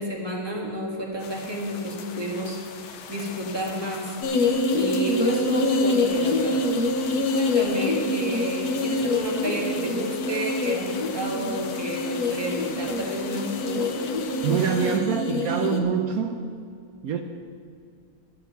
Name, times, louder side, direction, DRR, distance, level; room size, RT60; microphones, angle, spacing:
voice 1, 0.0-13.9, equal, 15° right, -1 dB, 1.3 m, -31 dB
sound 1, 1.2-15.0, left 7 dB, 75° left, 1.6 m, -40 dB
sound 2, 4.2-15.8, left 2 dB, 55° left, 1.2 m, -26 dB
voice 2, 14.4-16.4 17.0-17.2, right 7 dB, 85° right, 5 dB, 0.7 m, -25 dB
11.5 x 5.8 x 9.1 m, 2.2 s
omnidirectional pair, 2.4 m